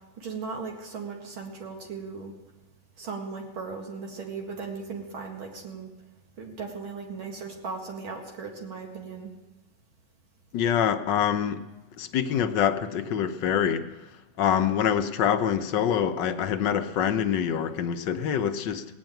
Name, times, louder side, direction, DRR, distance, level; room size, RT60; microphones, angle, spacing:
voice 1, 0.2-2.3 3.0-5.9 6.4-9.3, right 4 dB, 85° right, 2.9 m, -37 dB
voice 2, 10.5-11.6 12.0-13.9 14.4-18.8, left 8 dB, 70° left, 1.3 m, -25 dB
18.5 x 6.3 x 9.1 m
omnidirectional pair, 2.2 m